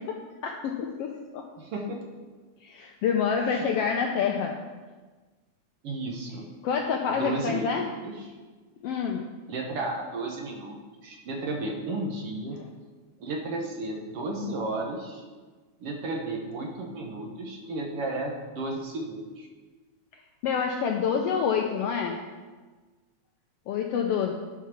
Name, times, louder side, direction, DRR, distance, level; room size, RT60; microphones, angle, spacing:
voice 1, 0.0-1.5 2.6-4.6 6.6-7.9 8.8-9.2 20.4-22.2 23.7-24.3, left 6 dB, 80° left, 2 dB, 1.4 m, -27 dB
voice 2, 1.6-2.0 3.4-3.7 5.8-6.4 7.1-8.3 9.5-10.8 11.0-12.6 13.2-15.2 15.8-19.5, right 2 dB, 60° right, 0 dB, 1.8 m, -33 dB
11.0 x 4.6 x 5.8 m, 1.3 s
omnidirectional pair, 3.3 m